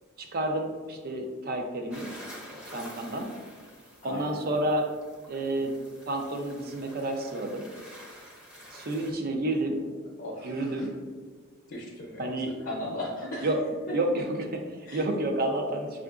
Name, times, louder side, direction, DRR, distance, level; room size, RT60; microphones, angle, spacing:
voice 1, 0.2-2.1 2.7-3.3 4.0-4.9 5.3-5.7 6.0-7.6 8.7-9.8 10.4-10.9 12.2-12.5 13.4-13.6 13.9-16.0, right 1 dB, 45° right, 3 dB, 0.5 m, -30 dB
sound 1, 1.9-9.1, equal, 5° right, 0.7 m, -48 dB
voice 2, 4.0-4.4 10.2-10.9 11.7-12.3 12.6-13.5 14.9-15.0, left 1 dB, 60° left, -4 dB, 0.7 m, -37 dB
6.5 x 2.5 x 2.4 m, 1.5 s
head